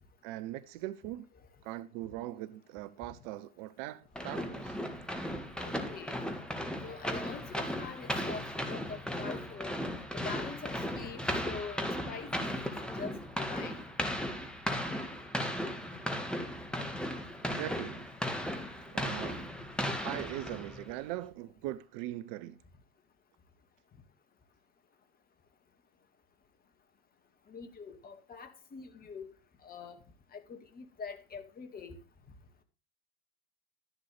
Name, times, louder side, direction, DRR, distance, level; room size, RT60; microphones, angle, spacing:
voice 1, 0.2-1.3 1.6-4.8 17.4-18.1 18.9-19.5 20.0-22.6, right 15 dB, 50° right, 0.7 m, -41 dB
sound 1, 4.2-20.9, equal, 5° left, 1.9 m, -36 dB
voice 2, 5.6-6.2 6.8-9.8 10.1-12.7 13.0-13.8 27.5-29.3 29.6-30.0 30.3-32.0, left 5 dB, 30° left, 2.1 m, -44 dB
12.5 x 11.0 x 3.4 m
figure-of-eight pair, 75°, 31 cm